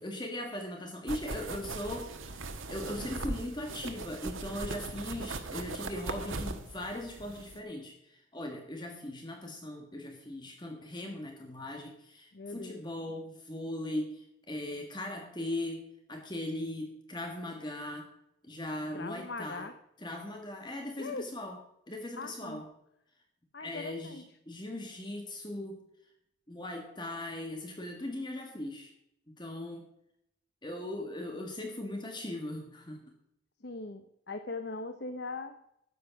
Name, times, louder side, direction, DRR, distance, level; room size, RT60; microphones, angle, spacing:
voice 1, 0.0-15.8 16.1-18.1 18.4-19.7 20.0-21.6 21.9-22.7 23.6-25.8 26.5-28.9 29.3-29.9 30.6-33.0, left 1 dB, 20° left, 3 dB, 1.6 m, -39 dB
sound 1, 1.1-7.6, right 3 dB, 85° right, 1.3 m, -39 dB
voice 2, 12.3-12.8 18.9-19.7 21.0-21.3 22.2-22.6 23.5-24.2 33.6-35.6, left 3 dB, 55° left, 8 dB, 0.8 m, -40 dB
12.5 x 8.4 x 5.9 m, 0.78 s
head